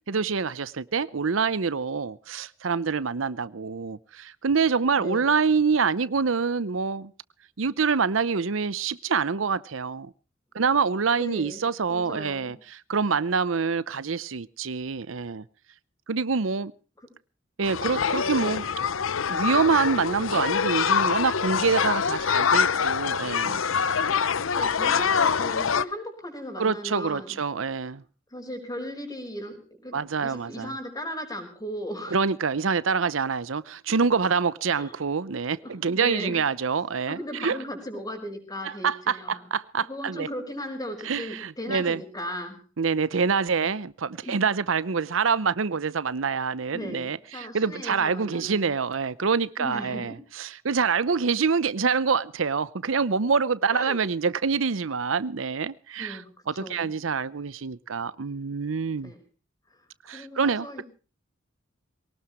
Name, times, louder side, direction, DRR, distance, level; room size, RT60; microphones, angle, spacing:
voice 1, 0.1-7.1 7.6-10.1 10.5-15.4 16.1-16.7 17.6-18.6 19.3-23.6 26.6-28.0 29.9-30.7 32.1-37.6 38.8-40.3 41.0-42.0 42.8-59.1 60.1-60.8, right 5 dB, 80° right, 0.7 m, -26 dB
voice 2, 5.0-5.3 11.2-12.6 18.4-18.6 23.8-27.4 28.3-29.6 29.8-32.2 34.7-35.0 35.6-36.4 37.1-39.5 39.9-42.6 44.2-44.4 46.7-48.8 49.6-50.2 53.7-54.0 56.0-56.9 59.0-59.2 59.7-60.8, equal, 20° left, 5.3 m, -37 dB
sound 1, 17.6-25.8, left 6 dB, 90° left, 0.8 m, -25 dB
23.0 x 18.5 x 3.1 m
head